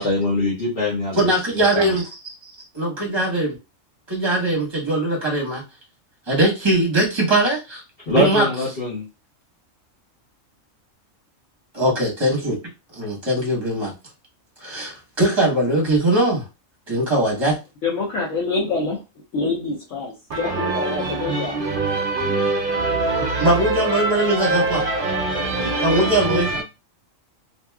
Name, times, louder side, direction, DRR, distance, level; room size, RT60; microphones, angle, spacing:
voice 1, 0.0-1.2 1.5-1.9 8.1-9.0, left 1 dB, 45° left, 1.2 m, -23 dB
voice 2, 1.1-2.0 2.4-3.5 4.1-5.6 6.3-7.8 8.1-8.5 11.7-12.6 12.9-13.9 14.6-16.4 16.9-17.6 23.4-24.8 25.8-26.5, right 1 dB, 25° right, 1.0 m, -20 dB
voice 3, 17.8-19.0 19.3-21.6 22.1-22.4, left 3 dB, 70° left, 1.0 m, -26 dB
voice 4, 20.3-26.6, right 3 dB, 55° right, 0.6 m, -24 dB
2.8 x 2.7 x 2.3 m
omnidirectional pair, 1.4 m